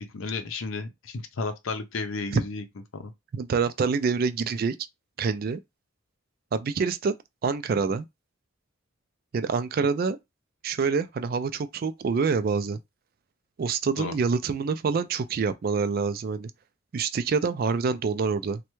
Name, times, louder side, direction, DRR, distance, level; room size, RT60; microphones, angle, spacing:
voice 1, 0.1-2.6 2.9-3.1 14.0-14.2, left 3 dB, 90° left, 0.6 m, -33 dB
voice 2, 3.3-4.8 5.2-5.6 6.5-7.1 7.4-8.1 9.3-10.2 10.6-12.8 13.6-16.5 16.9-18.6, right 5 dB, 50° right, 0.3 m, -26 dB
3.2 x 2.2 x 3.0 m
head